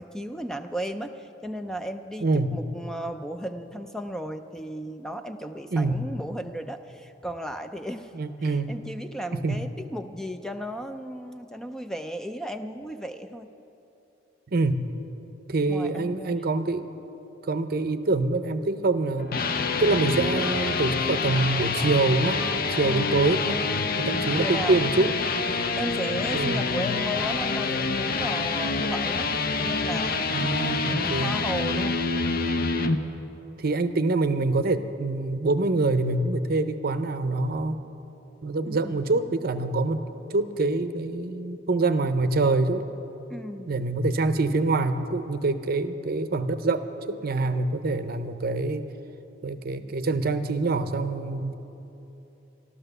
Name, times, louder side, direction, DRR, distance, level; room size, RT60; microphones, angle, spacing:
voice 1, 0.0-8.1 8.4-13.5 15.7-16.4 22.8-23.1 23.9-25.1 25.5-29.3 29.6-30.4 30.9-32.0 38.6-39.1 43.3-43.8, equal, 5° left, 7 dB, 0.4 m, -35 dB
voice 2, 2.2-2.5 5.7-6.0 8.1-8.8 9.4-9.6 14.5-14.8 15.5-16.8 17.4-19.3 19.8-22.4 22.7-23.6 24.0-25.1 26.3-26.6 30.3-31.3 33.6-37.8 38.4-40.0 40.3-42.9 43.7-48.9 49.4-51.5, right 3 dB, 55° right, 10 dB, 0.6 m, -25 dB
sound 1, 19.0-33.0, left 4 dB, 50° left, 0.7 m, -27 dB
13.5 x 12.5 x 6.7 m, 3.0 s
head